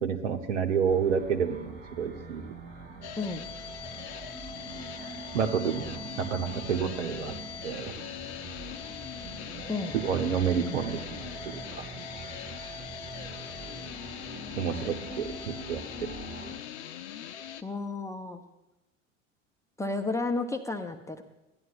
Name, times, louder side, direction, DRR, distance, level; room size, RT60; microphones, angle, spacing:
voice 1, 0.0-2.5 5.0-7.3 7.6-8.0 10.0-11.3 11.7-11.8 14.6-16.1, right 7 dB, 70° right, 6 dB, 1.1 m, -29 dB
sound 1, 0.9-16.6, right 3 dB, 25° right, 1.7 m, -44 dB
sound 2, 3.0-17.6, left 9 dB, 60° left, 0.7 m, -41 dB
voice 2, 17.6-18.4 19.8-21.2, left 3 dB, 10° left, 6 dB, 0.6 m, -32 dB
16.5 x 11.0 x 2.5 m, 0.99 s
figure-of-eight pair, 75°, 38 cm